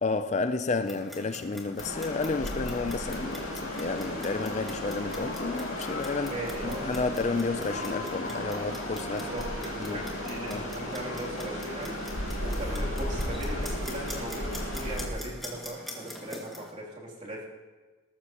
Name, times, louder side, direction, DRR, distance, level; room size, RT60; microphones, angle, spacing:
voice 1, 0.0-6.3 6.6-9.3 9.8-10.0 10.5-10.6, left 3 dB, 35° left, 9 dB, 0.5 m, -31 dB
Clock, 0.7-16.7, left 1 dB, ahead, 2.0 m, -45 dB
sound 1, 1.8-15.1, left 1 dB, 90° left, 2.3 m, -35 dB
sound 2, 3.0-15.0, right 3 dB, 80° right, 1.0 m, -43 dB
voice 2, 6.3-6.9 9.1-12.0 12.4-17.4, right 1 dB, 35° right, -5 dB, 3.0 m, -39 dB
20.5 x 13.0 x 3.0 m, 1.3 s
head